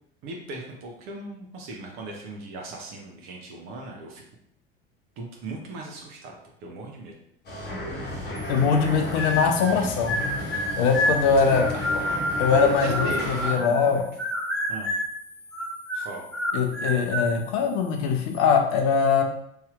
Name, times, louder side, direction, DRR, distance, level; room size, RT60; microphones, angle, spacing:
voice 1, 0.2-4.2 5.2-6.3 6.6-7.1 11.2-11.6 12.6-14.1 14.7-14.9 16.0-16.3, right 1 dB, 45° right, -1 dB, 0.6 m, -37 dB
sound 1, 7.4-13.5, left 1 dB, 35° left, 1.1 m, -33 dB
sound 2, 8.3-18.3, left 3 dB, 90° left, 0.9 m, -49 dB
voice 2, 8.5-10.2 10.8-11.6 12.4-14.0 16.5-19.2, left 6 dB, 55° left, 4 dB, 0.6 m, -22 dB
sound 3, 9.1-9.8 10.1-13.9 14.2-15.2 15.5-17.3, left 1 dB, ahead, 0.5 m, -28 dB
3.2 x 2.7 x 2.4 m, 0.72 s
figure-of-eight pair, 70°, 29 cm